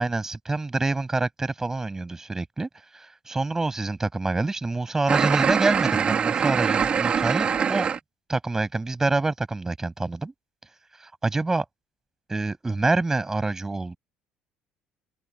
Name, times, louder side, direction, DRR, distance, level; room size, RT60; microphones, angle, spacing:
voice 1, 0.0-2.7 2.9-7.9 8.3-10.3 11.2-11.6 12.3-14.0, right 3 dB, 15° right, 7.4 m, -26 dB
sound 1, 5.1-8.0, right 7 dB, 40° right, 2.7 m, -23 dB
supercardioid pair, 90°, 3 cm